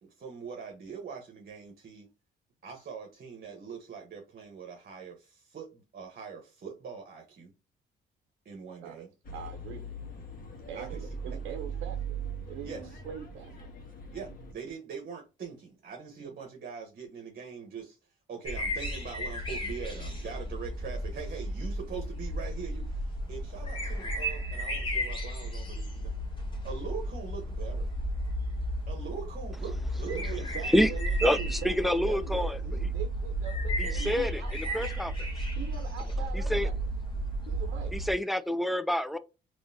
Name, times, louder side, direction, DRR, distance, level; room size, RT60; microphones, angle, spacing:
voice 1, 0.0-2.1 2.6-7.5 8.4-9.1 10.7-11.0 12.6-13.0 14.1-26.1 26.6-27.9 28.9-30.5, right 6 dB, 50° right, 1.1 m, -42 dB
sound 1, 9.2-14.5, right 4 dB, 45° left, 1.4 m, -40 dB
voice 2, 9.3-9.8 10.7-12.2 12.5-13.7 30.1-35.0 35.5-36.7 37.5-38.0, right 8 dB, 90° right, 0.6 m, -42 dB
sound 2, 18.4-38.1, right 1 dB, 25° left, 1.6 m, -33 dB
voice 3, 30.0-30.9 31.2-32.9 33.8-35.1 36.3-36.7 37.9-39.2, equal, ahead, 0.4 m, -28 dB
3.7 x 3.0 x 2.7 m
cardioid pair, 90°, 20 cm